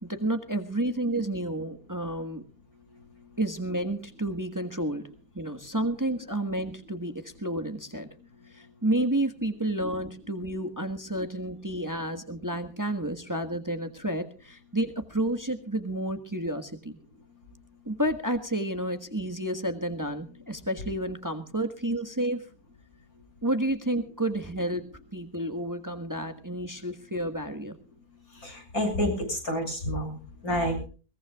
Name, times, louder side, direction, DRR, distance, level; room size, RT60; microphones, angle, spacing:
voice 1, 0.0-2.4 3.4-5.1 5.3-8.1 8.5-17.0 17.8-22.5 23.4-24.8 25.1-27.7, right 1 dB, 15° right, 7 dB, 1.5 m, -30 dB
voice 2, 28.4-30.1 30.4-30.8, equal, 85° left, 2 dB, 7.5 m, -28 dB
22.0 x 20.5 x 2.4 m, 0.37 s
omnidirectional pair, 1.5 m